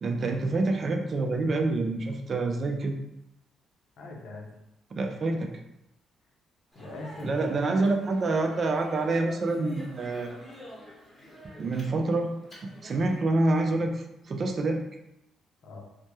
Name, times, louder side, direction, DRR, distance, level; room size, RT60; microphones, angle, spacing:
voice 1, 0.0-2.9 4.9-5.5 7.2-10.3 11.6-12.3 12.6-14.8, right 2 dB, 50° right, 4 dB, 0.3 m, -27 dB
voice 2, 4.0-4.5 5.2-5.4 6.7-7.9 15.6-15.8, left 2 dB, 70° left, 0 dB, 0.6 m, -41 dB
Speech, 6.7-13.2, equal, 20° left, 1.0 m, -48 dB
2.1 x 2.0 x 3.0 m, 0.85 s
supercardioid pair, 75°, 0 cm